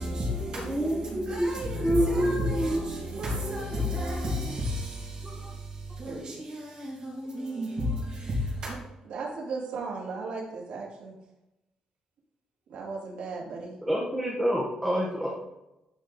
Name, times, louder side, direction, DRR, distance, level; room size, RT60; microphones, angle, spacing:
voice 1, 0.0-8.7, left 1 dB, 45° right, -3 dB, 2.6 m, -32 dB
voice 2, 0.5-1.5 1.8-2.8 5.2-5.5 13.8-15.3, right 1 dB, 10° right, -4 dB, 1.4 m, -28 dB
voice 3, 6.0-6.5 9.0-11.2 12.7-13.8, right 4 dB, 75° right, -3 dB, 2.8 m, -36 dB
11.5 x 5.0 x 4.2 m, 0.93 s
cardioid pair, 160°, 2 cm